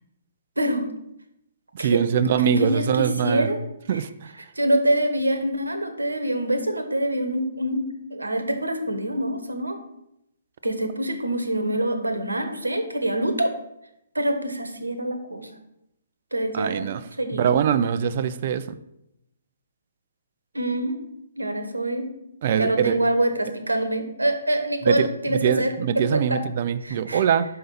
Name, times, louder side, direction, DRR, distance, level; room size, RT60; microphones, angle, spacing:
voice 1, 1.7-3.5 3.9-4.1 16.5-17.0 17.4-18.6 22.4-22.9 24.9-27.5, right 8 dB, 40° right, 13 dB, 0.5 m, -22 dB
voice 2, 2.4-3.6 3.9-4.0 4.6-9.8 10.6-13.5 14.1-15.5 16.3-16.9 17.2-17.5 20.5-21.0 21.4-22.1 22.6-26.4 26.8-27.2, right 1 dB, 80° right, 7 dB, 1.1 m, -25 dB
5.5 x 5.5 x 5.6 m, 0.82 s
figure-of-eight pair, 130°, 0 cm